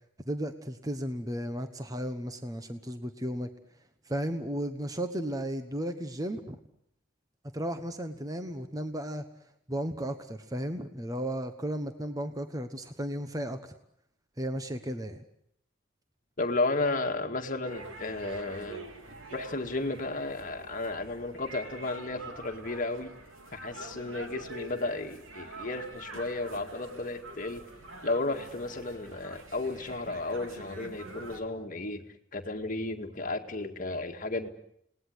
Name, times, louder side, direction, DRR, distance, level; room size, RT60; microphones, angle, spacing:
voice 1, 0.3-3.5 4.0-6.6 7.5-9.2 9.7-13.7 14.4-15.2, equal, 15° right, 8 dB, 1.2 m, -34 dB
voice 2, 16.4-18.8 19.3-23.1 23.5-27.6 28.0-32.0 32.3-34.5, left 2 dB, 40° left, 4 dB, 2.0 m, -33 dB
sound 1, 17.6-31.4, right 2 dB, 75° right, 3.6 m, -45 dB
29.5 x 19.5 x 8.0 m, 0.75 s
head